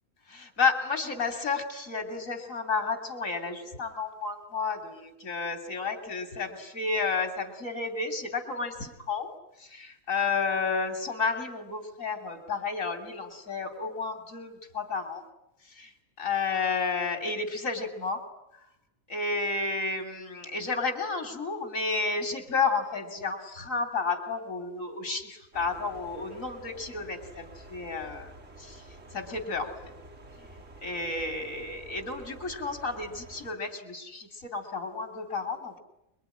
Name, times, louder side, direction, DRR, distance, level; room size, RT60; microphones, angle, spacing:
voice 1, 0.3-9.3 9.6-15.2 15.7-15.9 16.2-18.2 19.1-28.3 28.6-29.9 30.4-30.5 30.8-35.8, left 4 dB, 90° left, 5 dB, 3.3 m, -31 dB
sound 1, 25.5-33.5, right 1 dB, 70° right, 4.0 m, -49 dB
25.0 x 23.5 x 10.0 m, 0.82 s
omnidirectional pair, 1.3 m